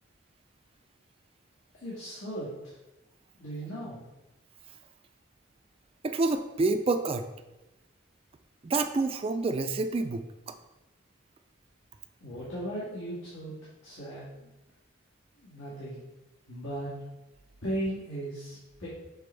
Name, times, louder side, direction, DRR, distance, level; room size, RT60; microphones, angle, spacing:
voice 1, 1.8-2.8 3.4-4.1 12.2-13.5 13.8-14.5 15.4-16.0 16.5-16.9 17.6-18.9, right 1 dB, 85° left, -9 dB, 1.8 m, -37 dB
voice 2, 6.0-7.3 8.6-10.5, right 3 dB, 30° right, 8 dB, 0.3 m, -28 dB
6.9 x 4.1 x 3.3 m, 1.0 s
head